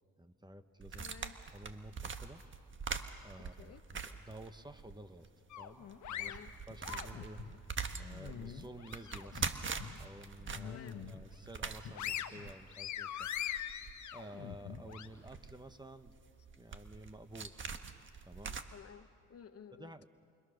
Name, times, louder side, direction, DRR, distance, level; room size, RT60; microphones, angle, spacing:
voice 1, 0.2-1.1 1.5-2.4 3.2-5.3 5.5-7.4 8.0-9.4 10.0-13.3 14.1-16.2 16.6-17.6 18.2-18.6 19.7-20.1, right 1 dB, 15° right, 10 dB, 1.2 m, -52 dB
sound 1, 0.8-5.0 5.2-5.3 5.8-18.6, right 5 dB, 40° right, 1.5 m, -43 dB
voice 2, 1.0-1.4 3.4-3.8 6.2-6.5 10.6-11.0 18.7-19.9, left 7 dB, 50° left, 10 dB, 1.0 m, -53 dB
sound 2, 5.5-7.5 8.0-9.4 9.8-10.0 10.4-11.2 11.6-15.1, left 10 dB, 70° left, 1.4 m, -42 dB
29.0 x 28.5 x 6.6 m, 2.5 s
cardioid pair, 90°, 30 cm